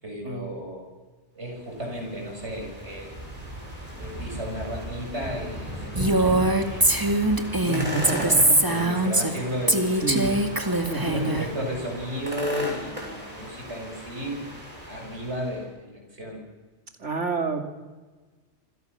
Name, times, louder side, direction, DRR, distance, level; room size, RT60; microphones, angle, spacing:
voice 1, 0.0-0.9 1.4-3.2 3.9-6.8 8.1-10.5 11.1-14.5 14.9-16.4, equal, 70° right, 2 dB, 7.3 m, -34 dB
sound 1, 1.6-15.6, equal, 35° right, 7.2 m, -37 dB
Female speech woman speaking, 6.0-9.4 9.7-11.5, right 1 dB, 20° right, 2.1 m, -22 dB
voice 2, 7.6-8.9 10.0-10.4 10.8-11.4 17.0-17.6, right 3 dB, 90° right, 5 dB, 3.1 m, -29 dB
27.0 x 26.5 x 6.9 m, 1.3 s
omnidirectional pair, 1.2 m